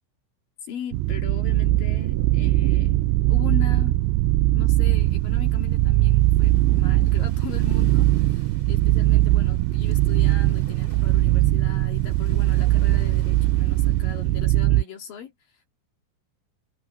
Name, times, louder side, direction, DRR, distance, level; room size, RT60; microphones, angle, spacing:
voice 1, 0.6-4.0 4.5-15.7, left 7 dB, 55° left, 3.2 m, -39 dB
sound 1, 0.9-14.8, right 17 dB, 80° right, 2.7 m, -20 dB
sound 2, 4.7-14.5, right 2 dB, 20° right, 6.7 m, -54 dB
omnidirectional pair, 5.7 m